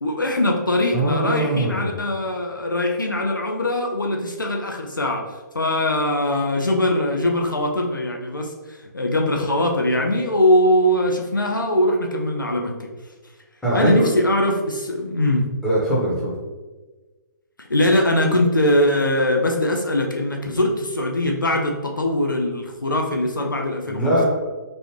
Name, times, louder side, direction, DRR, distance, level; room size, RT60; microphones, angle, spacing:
voice 1, 0.0-12.9 13.7-15.5 17.7-24.2, left 1 dB, 90° left, 1 dB, 0.4 m, -21 dB
voice 2, 0.9-1.9 13.6-14.1 15.6-16.3 23.9-24.2, right 1 dB, 5° left, -8 dB, 0.9 m, -21 dB
3.1 x 2.6 x 3.1 m, 1.2 s
figure-of-eight pair, 130°, 10 cm